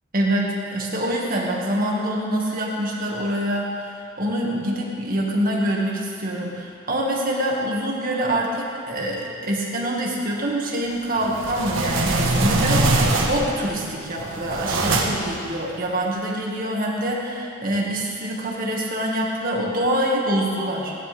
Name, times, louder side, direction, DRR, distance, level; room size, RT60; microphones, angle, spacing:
voice 1, 0.1-20.9, right 1 dB, 45° right, -2 dB, 2.0 m, -25 dB
sound 1, 11.2-13.6 14.1-15.4, right 2 dB, 80° right, 1.4 m, -22 dB
18.5 x 11.5 x 3.6 m, 2.4 s
head